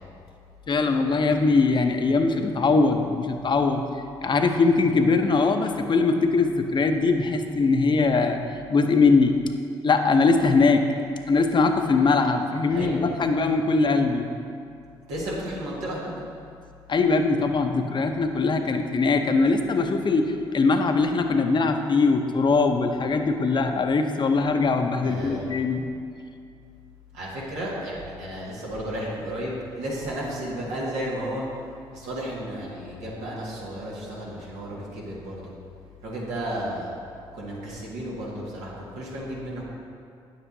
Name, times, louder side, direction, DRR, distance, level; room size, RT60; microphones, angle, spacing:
voice 1, 0.7-3.8 4.2-8.4 8.7-9.3 9.8-10.8 11.3-14.3 16.9-25.8, left 4 dB, 45° left, 5 dB, 0.7 m, -21 dB
voice 2, 12.7-13.0 15.1-16.1 25.0-25.4 27.1-31.4 31.9-35.5 36.0-36.9 37.3-39.6, right 1 dB, 85° right, -5 dB, 1.8 m, -33 dB
9.5 x 7.7 x 2.7 m, 2.4 s
supercardioid pair, 60°, 11 cm